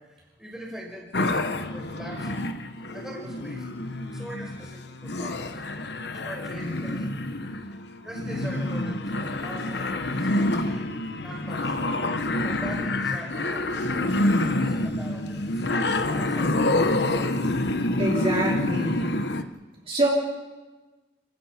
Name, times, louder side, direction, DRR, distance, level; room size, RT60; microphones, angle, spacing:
voice 1, 0.0-2.6 2.9-3.7 4.0-5.9 6.2-7.1 7.7-10.9 11.2-11.9 12.4-16.8, equal, 5° right, -2 dB, 5.3 m, -42 dB
sound 1, 1.1-19.4, left 2 dB, 60° left, 1.1 m, -27 dB
voice 2, 18.0-19.1 19.9-20.1, right 1 dB, 30° right, -4 dB, 4.2 m, -25 dB
30.0 x 16.0 x 5.9 m, 1.2 s
head